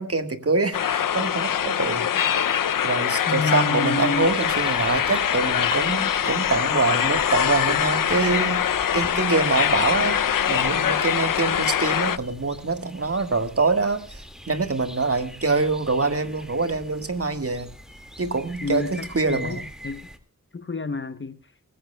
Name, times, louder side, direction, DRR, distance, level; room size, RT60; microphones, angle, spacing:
voice 1, 0.0-2.4 2.8-8.6 8.9-10.2 10.5-17.7 18.2-19.7, right 3 dB, 45° right, 1.6 m, -25 dB
sound 1, 0.7-12.2, left 9 dB, 75° left, 0.6 m, -23 dB
voice 2, 3.3-4.3 18.6-20.1 20.5-21.5, left 4 dB, 35° left, 0.9 m, -29 dB
sound 2, 4.1-20.2, equal, ahead, 2.0 m, -42 dB
23.5 x 15.5 x 2.2 m
wide cardioid pair, 65°, 33 cm